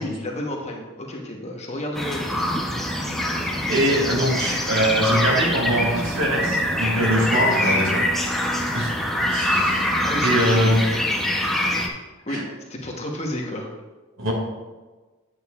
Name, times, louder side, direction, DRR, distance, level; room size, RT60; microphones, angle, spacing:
voice 1, 0.0-2.5 7.6-7.8 9.7-11.0 11.4-11.7 12.3-13.7, left 1 dB, 30° left, 0 dB, 1.0 m, -32 dB
sound 1, 1.9-11.9, left 1 dB, ahead, 0.7 m, -24 dB
voice 2, 3.7-8.1 8.7-9.0 9.3-10.9 12.3-12.4 14.2-14.3, equal, 65° right, -1 dB, 2.3 m, -22 dB
9.1 x 8.6 x 2.4 m, 1.2 s
head